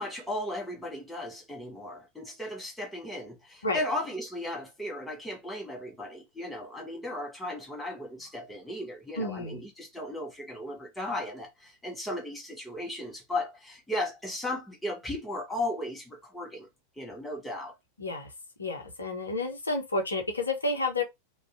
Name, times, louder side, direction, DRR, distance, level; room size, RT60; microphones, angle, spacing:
voice 1, 0.0-16.7 17.0-17.7, left 1 dB, 5° left, 0.8 m, -36 dB
voice 2, 9.2-9.6 18.0-18.3 18.6-21.0, left 2 dB, 75° left, 0.6 m, -30 dB
2.4 x 2.1 x 2.4 m
figure-of-eight pair, 90°, 0 cm